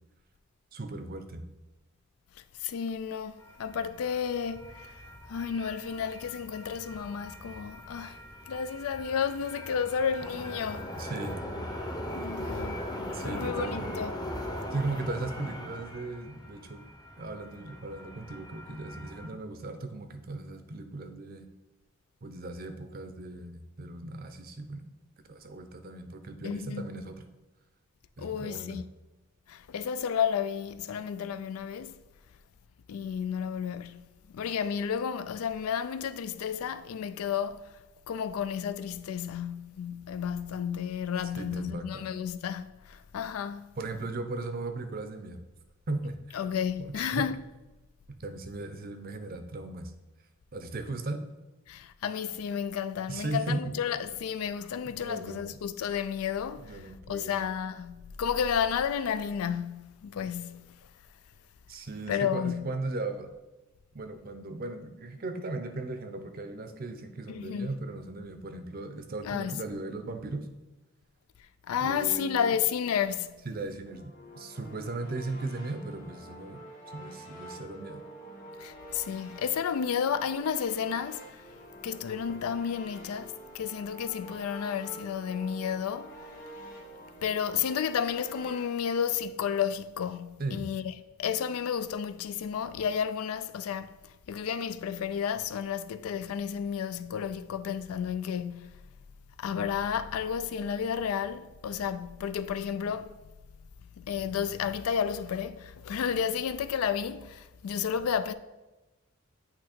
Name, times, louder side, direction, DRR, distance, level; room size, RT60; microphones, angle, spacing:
voice 1, 0.7-1.4 11.0-11.4 13.1-13.9 14.7-16.9 17.2-21.5 22.2-24.9 25.3-27.2 28.2-28.8 41.4-42.1 43.8-45.4 45.9-46.4 46.8-47.3 48.1-49.9 50.5-51.2 53.1-53.7 54.8-55.6 56.6-57.4 61.7-63.3 63.9-70.5 71.8-72.6 73.4-76.6 76.9-78.0 90.4-90.6, right 2 dB, 45° right, 0.6 m, -37 dB
voice 2, 2.6-4.9 5.3-8.2 8.5-10.9 12.1-12.8 13.2-14.1 26.4-26.9 28.2-28.9 29.5-32.0 32.9-37.8 38.1-43.7 46.3-47.4 51.7-60.8 62.1-62.7 67.3-67.7 69.2-69.6 71.7-73.4 78.6-81.4 81.8-86.2 87.2-90.9 91.2-98.8 99.4-103.1 104.0-108.3, left 7 dB, 85° left, 0.4 m, -32 dB
sound 1, 3.4-19.3, left 1 dB, 20° left, 0.7 m, -40 dB
sound 2, 73.9-88.6, right 1 dB, 40° left, 1.3 m, -47 dB
8.6 x 2.9 x 4.3 m
head